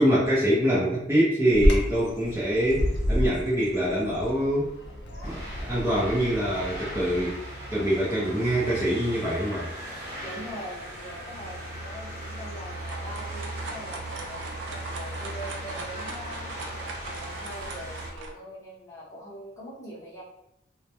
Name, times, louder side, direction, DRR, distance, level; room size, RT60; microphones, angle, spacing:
voice 1, 0.0-4.7 5.2-7.4 7.7-9.7, equal, 10° right, -10 dB, 0.4 m, -24 dB
Bird vocalization bird call bird song, 1.5-7.2, equal, 60° left, 0.5 m, -29 dB
sound 1, 5.2-18.1, right 1 dB, 55° right, 0.9 m, -38 dB
voice 2, 10.2-16.6 17.0-20.2, equal, 15° left, -8 dB, 0.7 m, -42 dB
sound 2, 12.5-18.3, right 3 dB, 75° right, 0.4 m, -40 dB
2.2 x 2.1 x 2.8 m, 0.81 s
head